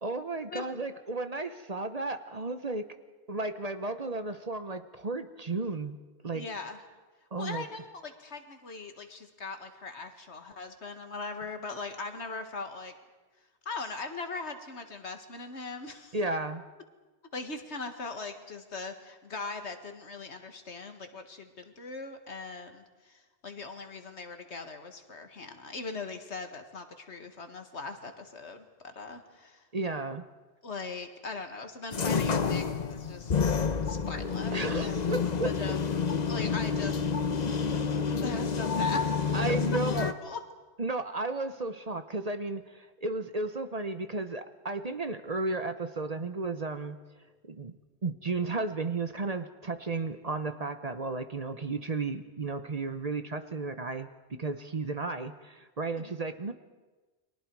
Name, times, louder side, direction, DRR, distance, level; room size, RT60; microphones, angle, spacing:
voice 1, 0.0-2.8 3.3-6.0 6.2-6.5 7.3-7.7 16.1-16.6 29.7-30.2 34.5-35.5 39.3-40.1 40.8-47.0 47.4-47.7 48.0-56.5, right 3 dB, 35° right, 9 dB, 0.9 m, -33 dB
voice 2, 6.3-6.8 7.4-12.9 13.7-16.2 17.3-29.6 30.6-33.3 33.8-35.9 36.2-37.0 38.2-39.6 39.9-40.4 56.0-56.1, left 3 dB, 75° left, 6 dB, 2.1 m, -40 dB
sound 1, 31.9-40.1, left 5 dB, 40° left, 0.9 m, -29 dB
30.0 x 23.0 x 4.7 m, 1.3 s
omnidirectional pair, 1.1 m